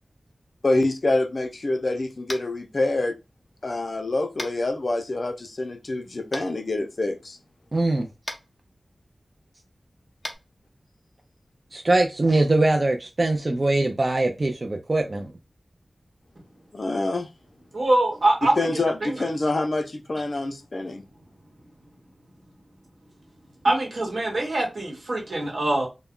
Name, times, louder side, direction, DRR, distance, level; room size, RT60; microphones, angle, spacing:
voice 1, 0.6-3.2 3.6-7.4 16.7-17.3 18.4-21.0, left 2 dB, 55° left, 0.4 m, -26 dB
Tap, 2.3-2.5 4.4-4.5 6.3-6.4 8.2-8.4 10.2-10.4, left 1 dB, 15° left, 0.6 m, -34 dB
voice 2, 7.7-8.1 11.7-15.3, right 2 dB, 45° right, 0.4 m, -22 dB
voice 3, 17.7-18.7 19.0-19.2 23.6-25.9, right 2 dB, 75° right, 1.0 m, -23 dB
2.2 x 2.1 x 3.6 m
wide cardioid pair, 80°, 0 cm